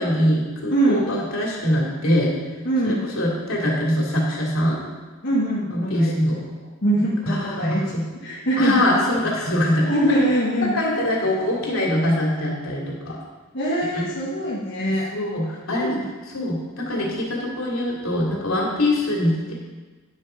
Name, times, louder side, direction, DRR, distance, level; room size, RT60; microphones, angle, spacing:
voice 1, 0.0-2.3 2.8-4.8 5.7-6.4 7.3-8.0 8.6-10.1 10.7-13.2 13.9-14.0 15.1-16.0 16.3-19.5, left 1 dB, 75° left, -3 dB, 2.8 m, -23 dB
voice 2, 0.7-1.1 2.6-3.1 5.2-6.2 6.8-7.8 8.2-8.9 9.9-10.7 13.5-15.1 15.7-15.9, right 1 dB, 55° left, -6 dB, 1.4 m, -22 dB
9.7 x 6.5 x 5.7 m, 1.3 s
head